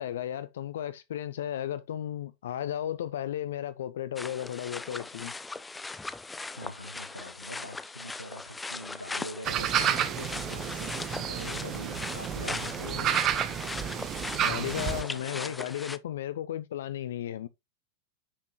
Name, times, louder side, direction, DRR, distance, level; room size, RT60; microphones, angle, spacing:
voice 1, 0.0-5.3 14.4-17.5, left 11 dB, 60° left, 0.5 m, -34 dB
sound 1, 4.2-16.0, left 3 dB, 10° left, 0.7 m, -39 dB
voice 2, 6.5-13.1 14.8-15.6, left 1 dB, 85° left, 1.0 m, -44 dB
sound 2, 9.4-15.0, right 10 dB, 35° right, 1.1 m, -30 dB
9.9 x 5.9 x 3.0 m
figure-of-eight pair, 90°, 0 cm